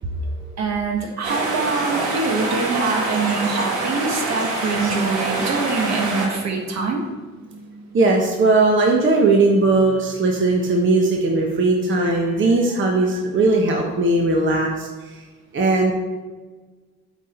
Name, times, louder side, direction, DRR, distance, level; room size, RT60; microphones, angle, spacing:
voice 1, 0.6-7.1, right 4 dB, 60° right, 1 dB, 1.4 m, -24 dB
sound 1, 1.2-6.3, right 2 dB, 90° right, 1.3 m, -25 dB
voice 2, 7.9-15.2 15.5-15.9, right 2 dB, 40° right, 0 dB, 1.0 m, -18 dB
8.0 x 4.1 x 4.4 m, 1.3 s
cardioid pair, 90°, 30 cm